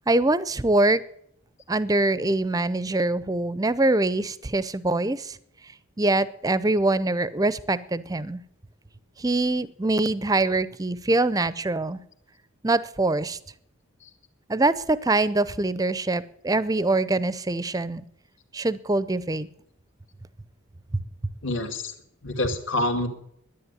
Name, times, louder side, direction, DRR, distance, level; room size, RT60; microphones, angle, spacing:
voice 1, 0.1-1.0 1.7-5.4 6.0-8.4 9.2-12.0 12.6-13.4 14.5-18.0 18.5-19.5 20.9-21.0, right 2 dB, 15° right, 16 dB, 0.5 m, -24 dB
voice 2, 21.4-21.9 22.2-23.1, left 1 dB, 60° left, 6 dB, 2.3 m, -26 dB
11.0 x 10.5 x 9.5 m, 0.71 s
head